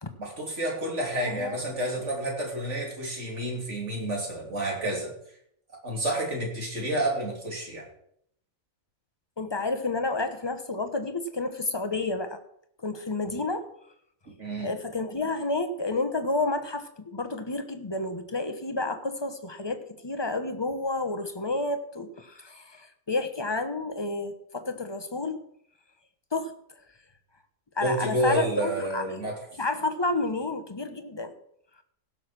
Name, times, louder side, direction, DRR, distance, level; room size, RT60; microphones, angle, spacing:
voice 1, 0.2-5.1 5.8-7.9 13.3-13.4 14.4-14.7 27.8-29.4, right 1 dB, 60° right, -1 dB, 3.6 m, -29 dB
voice 2, 1.2-1.6 9.4-12.4 12.8-13.7 14.6-25.4 26.3-26.5 27.8-29.0 29.6-31.3, left 2 dB, 20° left, 8 dB, 1.0 m, -30 dB
16.5 x 6.7 x 6.0 m, 0.70 s
omnidirectional pair, 1.4 m